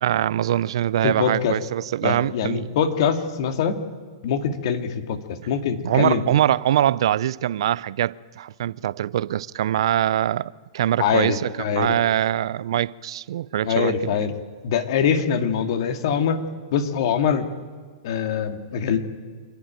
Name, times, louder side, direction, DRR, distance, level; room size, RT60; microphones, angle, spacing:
voice 1, 0.0-2.7 5.8-14.2, right 11 dB, 70° right, 0.5 m, -23 dB
voice 2, 1.0-1.6 2.0-3.8 4.2-5.2 5.5-6.2 11.0-11.9 13.6-14.3 14.6-16.4 16.7-17.5 18.0-19.0, left 7 dB, 60° left, 2.2 m, -23 dB
27.0 x 11.0 x 9.0 m
hypercardioid pair, 130°, 3 cm